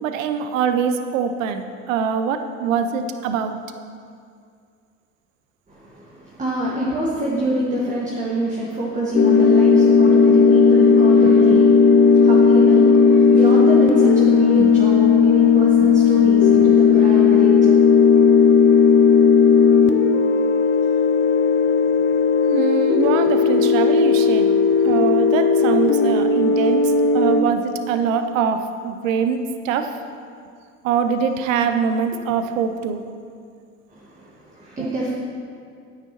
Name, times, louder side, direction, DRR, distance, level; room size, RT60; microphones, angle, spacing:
voice 1, 0.0-3.6 11.2-11.6 14.6-14.7 22.5-24.6 24.8-29.9 30.8-33.0 34.8-34.9, right 6 dB, 70° right, 8 dB, 0.7 m, -23 dB
voice 2, 5.7-17.8 18.2-18.3 32.1-32.2 33.9-35.1, right 1 dB, 20° right, -5 dB, 1.6 m, -26 dB
sound 1, 9.1-27.4, left 5 dB, 30° left, 0.6 m, -15 dB
9.6 x 8.9 x 3.0 m, 2.3 s
hypercardioid pair, 70°, 41 cm